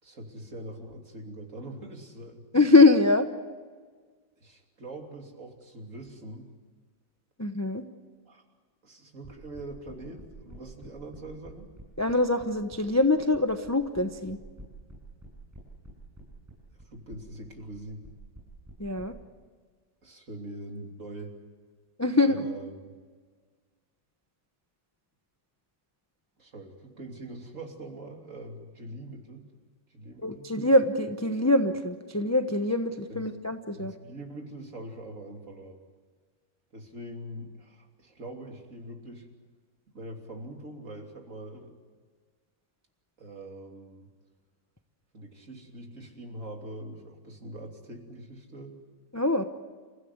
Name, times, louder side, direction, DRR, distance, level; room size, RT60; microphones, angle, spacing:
voice 1, 0.0-2.4 4.4-6.5 8.2-8.4 8.8-11.7 16.7-18.0 20.0-21.4 22.2-22.9 26.4-29.4 29.9-30.5 33.1-33.3 33.7-35.8 36.7-39.3 39.9-41.7 43.2-44.1 45.1-48.8, right 1 dB, 40° right, 2 dB, 3.4 m, -43 dB
voice 2, 2.5-3.3 7.4-7.8 12.0-14.4 18.8-19.1 22.0-22.4 30.2-33.9 49.1-49.4, left 2 dB, 15° left, 7 dB, 0.5 m, -23 dB
sound 1, 9.2-19.1, right 1 dB, 10° right, 7.6 m, -48 dB
28.5 x 16.0 x 9.5 m, 1.5 s
omnidirectional pair, 2.1 m